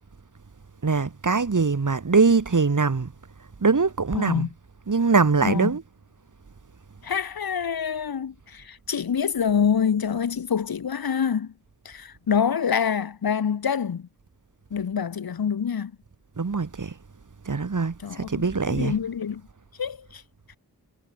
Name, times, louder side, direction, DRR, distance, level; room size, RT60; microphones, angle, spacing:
voice 1, 0.8-3.1 3.6-4.5 4.9-5.8 16.4-16.9 17.4-19.0, right 4 dB, 50° right, 1.6 m, -22 dB
voice 2, 4.1-4.5 5.4-5.7 7.0-11.5 11.8-14.1 14.7-15.9 18.0-19.4 19.8-20.2, left 7 dB, 65° left, 0.8 m, -26 dB
wide cardioid pair, 65°, 39 cm